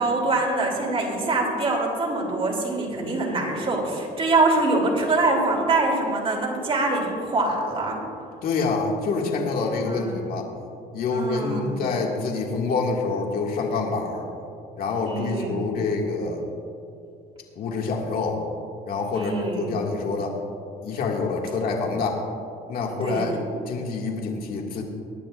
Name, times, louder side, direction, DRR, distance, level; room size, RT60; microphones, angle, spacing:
voice 1, 0.0-8.0 9.7-10.2 11.1-12.0 15.0-15.9 19.1-19.8 23.0-23.4, right 2 dB, 35° right, -1 dB, 3.1 m, -24 dB
voice 2, 8.4-10.5 10.9-14.3 14.8-16.4 17.6-18.4 18.9-20.4 20.8-22.2 22.7-23.3 23.7-24.8, left 4 dB, 60° left, 0 dB, 2.1 m, -26 dB
23.5 x 10.5 x 2.5 m, 2.5 s
cardioid pair, 110°, 17 cm